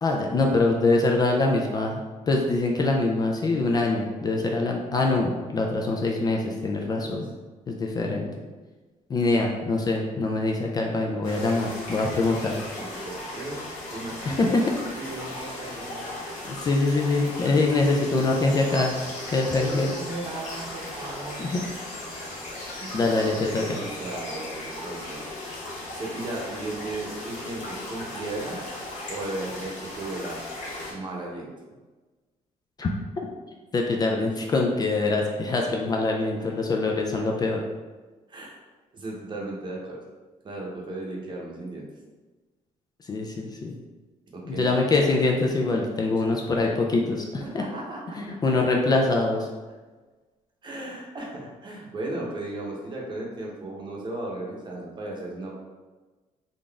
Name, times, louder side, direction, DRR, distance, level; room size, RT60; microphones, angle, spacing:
voice 1, 0.0-7.3 7.7-8.3 9.1-12.6 14.3-14.6 16.5-19.0 19.3-19.9 21.4-21.6 22.9-23.6 32.8-32.9 33.2-33.3 33.7-37.6 43.1-43.7 44.5-47.6 48.2-49.5, left 3 dB, 30° left, 0 dB, 0.4 m, -24 dB
voice 2, 6.8-7.3 11.2-11.4 12.8-16.1 19.6-21.4 22.7-25.3 25.9-28.6 29.1-30.4 30.9-31.5 38.3-38.6 38.9-40.0 40.4-41.9 43.7-43.8 44.3-44.7 47.4-48.4 50.6-55.5, right 2 dB, 35° right, -2 dB, 0.8 m, -36 dB
sound 1, 11.2-30.9, left 1 dB, 70° left, 1.5 m, -37 dB
3.8 x 2.5 x 3.4 m, 1.3 s
cardioid pair, 140°, 14 cm